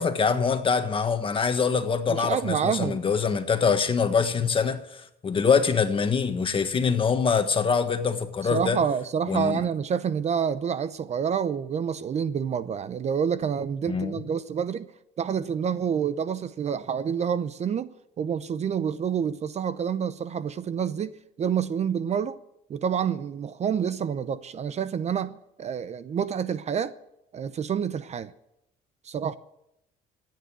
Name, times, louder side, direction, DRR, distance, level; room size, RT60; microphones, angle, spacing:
voice 1, 0.0-8.8 9.3-9.6 13.9-14.1, left 5 dB, 30° left, 1.5 m, -24 dB
voice 2, 2.1-3.0 8.5-14.9 15.2-17.9 18.2-22.4 22.7-26.9 27.3-28.3 29.0-29.4, right 7 dB, 40° right, 0.7 m, -28 dB
14.5 x 9.5 x 8.3 m
cardioid pair, 110°, 17 cm